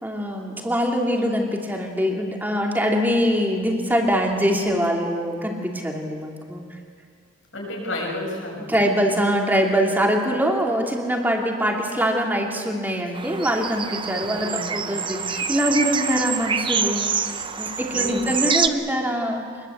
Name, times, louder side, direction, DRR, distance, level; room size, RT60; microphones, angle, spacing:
voice 1, 0.0-6.6 8.7-17.1 17.6-19.7, equal, 10° right, 0 dB, 2.9 m, -23 dB
voice 2, 7.5-8.9 14.2-14.9 17.9-18.3, left 1 dB, 85° left, -1 dB, 7.1 m, -32 dB
sound 1, 13.1-18.7, right 6 dB, 25° right, 0.9 m, -26 dB
25.5 x 21.5 x 8.2 m, 2.1 s
head